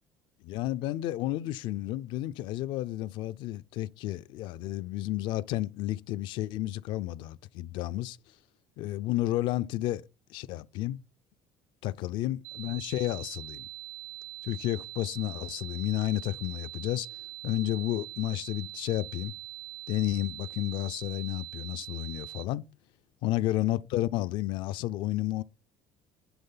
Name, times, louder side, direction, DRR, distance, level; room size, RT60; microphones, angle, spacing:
voice 1, 0.4-8.2 8.8-10.0 10.3-11.0 11.8-13.7 14.4-17.1 17.4-19.3 19.9-22.6 23.2-25.4, left 15 dB, 65° left, 0.4 m, -31 dB
sound 1, 12.4-22.4, right 17 dB, 70° right, 0.8 m, -43 dB
10.5 x 3.9 x 5.6 m
cardioid pair, 160°, 9 cm